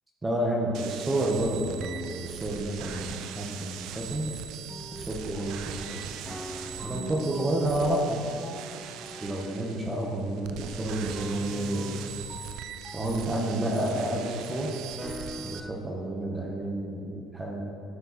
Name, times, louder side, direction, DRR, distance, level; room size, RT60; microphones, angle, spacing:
voice 1, 0.2-4.3 5.1-6.2 6.8-8.2 9.2-11.9 12.9-14.7 15.4-17.6, right 1 dB, 15° right, -1 dB, 1.1 m, -30 dB
sound 1, 0.7-15.6, right 9 dB, 70° right, 0.4 m, -41 dB
sound 2, 4.7-5.9 6.2-14.4 14.8-15.7, left 1 dB, 10° left, 0.4 m, -44 dB
12.5 x 4.4 x 4.2 m, 2.5 s
cardioid pair, 120°, 0 cm